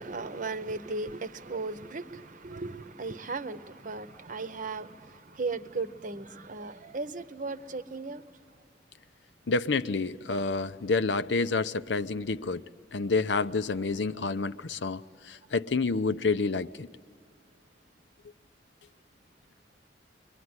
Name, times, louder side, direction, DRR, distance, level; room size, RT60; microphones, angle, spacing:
voice 1, 0.0-8.2, right 3 dB, 45° right, 0.9 m, -36 dB
voice 2, 9.5-12.6 12.9-15.0 15.3-16.9, left 3 dB, 85° left, 0.7 m, -28 dB
25.0 x 23.0 x 9.7 m
head